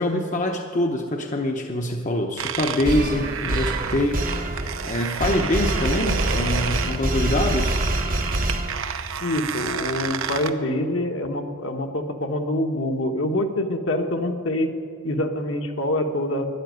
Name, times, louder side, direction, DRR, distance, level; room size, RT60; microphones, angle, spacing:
voice 1, 0.0-4.2 4.8-7.8, left 1 dB, 35° left, 3 dB, 0.9 m, -24 dB
sound 1, 2.4-10.5, right 7 dB, 65° right, 0.8 m, -31 dB
sound 2, 2.8-9.2, right 1 dB, 40° right, 1.1 m, -26 dB
voice 2, 9.2-14.7 15.0-16.5, left 1 dB, 60° left, 4 dB, 1.3 m, -25 dB
12.5 x 11.0 x 9.3 m, 2.2 s
head